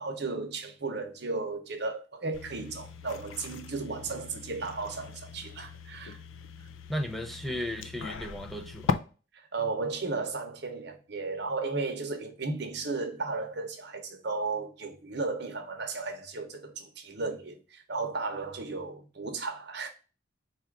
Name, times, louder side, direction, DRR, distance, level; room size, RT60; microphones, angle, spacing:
voice 1, 0.0-6.2 9.3-19.9, right 3 dB, 55° right, 0.9 m, -35 dB
sound 1, 2.3-8.9, left 5 dB, 85° left, 0.4 m, -39 dB
voice 2, 6.9-9.0, equal, ahead, 0.4 m, -35 dB
4.4 x 2.5 x 4.5 m
head